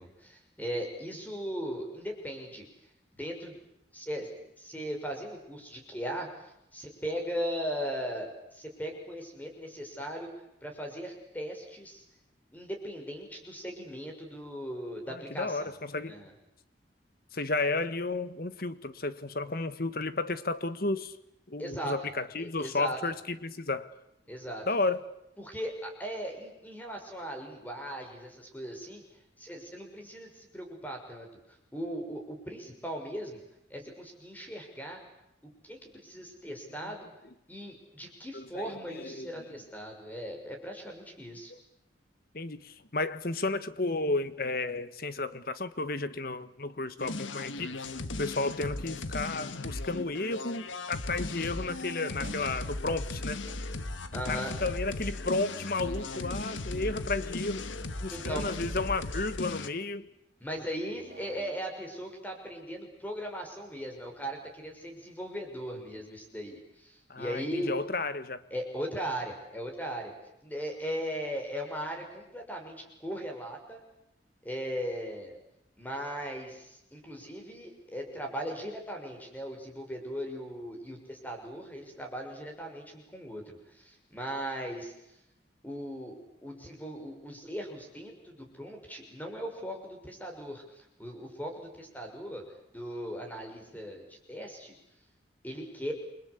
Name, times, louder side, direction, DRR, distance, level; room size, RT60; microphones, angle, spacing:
voice 1, 0.0-2.6 3.1-3.6 3.9-4.3 4.6-10.3 10.6-12.0 12.5-15.7 16.0-16.3 21.6-21.9 22.4-23.0 24.3-24.6 25.4-29.0 29.4-31.3 31.7-33.4 33.7-35.0 35.6-37.1 37.5-41.5 54.1-54.6 58.1-58.5 60.4-67.7 68.5-70.1 70.4-73.8 74.4-75.3 75.8-84.9 85.6-92.4 92.7-94.7 95.4-95.9, equal, 10° left, 6.1 m, -38 dB
voice 2, 15.1-16.2 17.3-21.2 21.5-23.9 24.7-25.1 36.8-36.9 38.3-39.4 41.5-41.6 42.3-47.9 48.2-53.4 54.3-57.7 58.0-60.1 67.1-68.4, left 3 dB, 50° left, 1.5 m, -33 dB
sound 1, 47.0-59.7, left 2 dB, 90° left, 1.5 m, -37 dB
sound 2, 52.0-52.9 53.4-54.2 54.6-55.3 55.7-56.4 57.5-58.5 60.8-61.7 63.8-64.6 65.0-65.2 65.8-66.2, right 1 dB, 50° right, 4.9 m, -55 dB
29.0 x 24.5 x 8.4 m
head